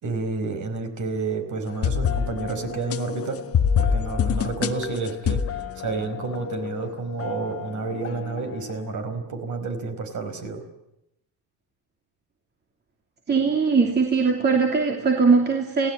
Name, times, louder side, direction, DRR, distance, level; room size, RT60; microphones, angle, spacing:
voice 1, 0.0-3.4 3.8-10.6, right 4 dB, 45° right, 8 dB, 5.1 m, -30 dB
Making Up (soft Hip Hop), 1.7-6.8 7.2-8.7, left 7 dB, 35° left, 1.4 m, -27 dB
voice 2, 13.3-15.9, right 4 dB, 25° right, 2 dB, 2.9 m, -20 dB
28.0 x 17.5 x 8.8 m, 0.84 s
cardioid pair, 145°, 41 cm